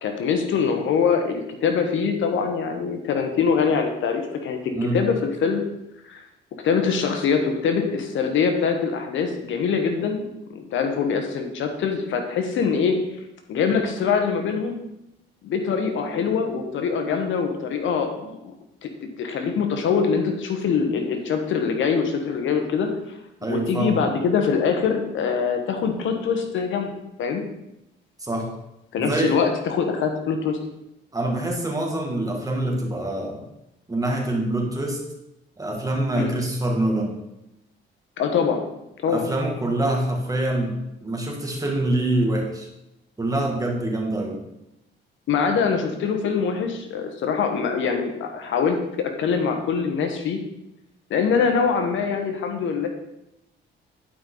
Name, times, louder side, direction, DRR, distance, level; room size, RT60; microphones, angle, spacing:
voice 1, 0.0-4.6 4.9-5.7 6.1-6.2 6.6-12.9 13.5-14.8 15.4-18.5 18.8-18.9 19.2-23.2 23.5-26.9 27.2-27.4 28.9-30.6 36.1-36.3 38.2-38.6 39.0-39.2 45.3-50.4 51.1-52.9, left 6 dB, 75° left, 5 dB, 1.2 m, -23 dB
voice 2, 23.4-24.0 28.2-28.5 29.0-29.4 31.1-33.4 33.9-35.0 35.6-37.2 39.1-42.7 43.2-44.4, right 1 dB, 15° right, 0 dB, 2.2 m, -25 dB
11.0 x 5.4 x 4.0 m, 0.86 s
cardioid pair, 90°, 20 cm